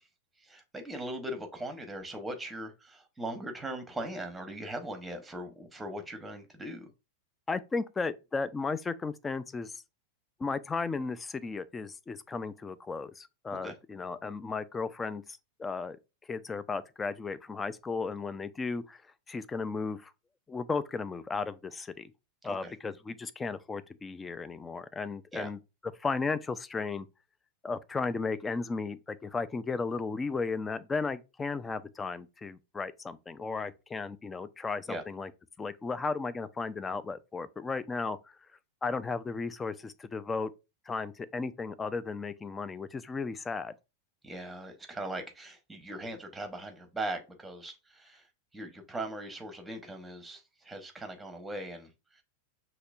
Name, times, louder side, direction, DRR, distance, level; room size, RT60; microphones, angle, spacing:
voice 1, 0.4-6.9 13.6-13.7 22.4-22.7 25.3-25.5 34.9-35.0 44.2-48.2 48.5-52.2, right 1 dB, 10° right, 0.9 m, -40 dB
voice 2, 7.5-9.7 10.4-15.2 15.6-16.0 16.3-19.0 19.3-20.1 20.5-22.1 22.4-25.6 26.0-27.1 27.6-35.3 35.6-38.3 38.8-40.5 40.9-43.7, left 4 dB, 15° left, 0.4 m, -35 dB
5.8 x 2.9 x 2.4 m
figure-of-eight pair, 90°, 0 cm